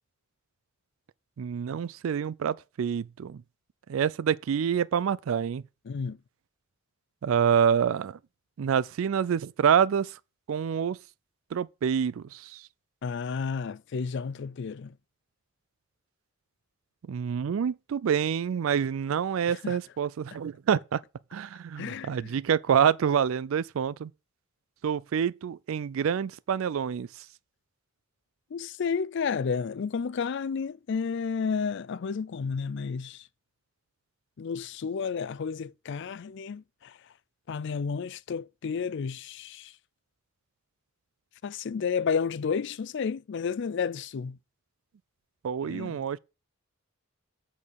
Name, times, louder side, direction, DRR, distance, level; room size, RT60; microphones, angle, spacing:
voice 1, 1.4-3.4 3.9-5.6 7.2-8.2 8.6-10.2 10.5-11.0 11.5-12.7 17.1-21.0 21.3-24.1 24.8-27.2 45.4-46.2, right 7 dB, 70° right, 0.4 m, -27 dB
voice 2, 5.9-6.2 13.0-14.9 19.5-19.8 21.8-22.3 28.5-33.3 34.4-37.0 37.5-39.7 41.4-44.4 45.6-46.0, left 6 dB, 55° left, 0.4 m, -31 dB
8.2 x 4.3 x 6.8 m
head